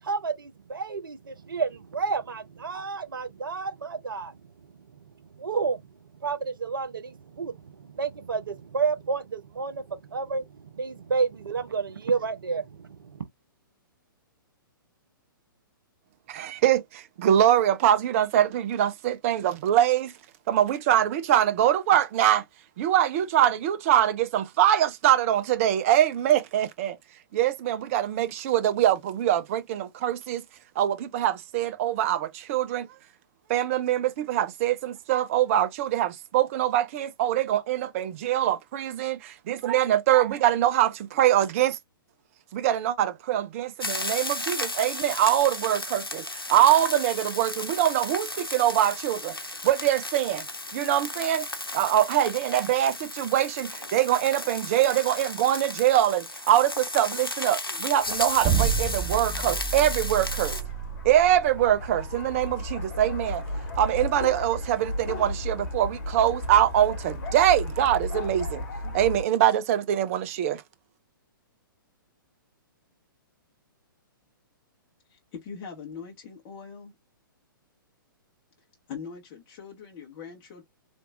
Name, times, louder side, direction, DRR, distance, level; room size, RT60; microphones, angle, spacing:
voice 1, 0.0-13.3, right 5 dB, 70° right, 0.8 m, -31 dB
voice 2, 16.3-20.1 20.5-22.4 22.8-27.0 27.3-30.4 30.8-32.9 33.5-41.8 42.5-49.4 49.6-50.5 50.7-51.5 51.7-60.6 61.0-63.4 63.7-70.6, right 11 dB, 40° right, 0.6 m, -23 dB
sound 1, 43.8-60.6, left 2 dB, 90° left, 0.8 m, -34 dB
sound 2, 58.0-69.2, left 1 dB, 50° left, 1.6 m, -35 dB
sound 3, 58.4-64.6, right 7 dB, 15° right, 0.9 m, -30 dB
voice 3, 75.1-76.9 78.9-80.6, left 6 dB, 30° left, 1.2 m, -41 dB
3.5 x 2.9 x 2.5 m
figure-of-eight pair, 120°, 12 cm